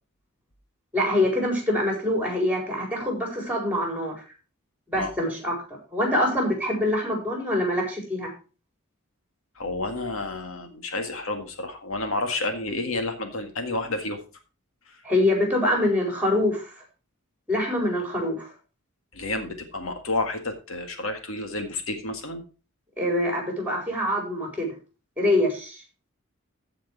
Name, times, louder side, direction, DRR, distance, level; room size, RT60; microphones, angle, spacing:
voice 1, 0.9-4.1 4.9-5.5 5.9-8.3 15.0-16.7 17.5-18.5 23.0-24.7 25.2-25.8, left 1 dB, 5° right, 1 dB, 4.4 m, -24 dB
voice 2, 9.5-14.2 14.9-15.0 19.1-22.4, left 2 dB, 75° left, 5 dB, 1.8 m, -30 dB
15.0 x 5.1 x 4.6 m, 0.34 s
head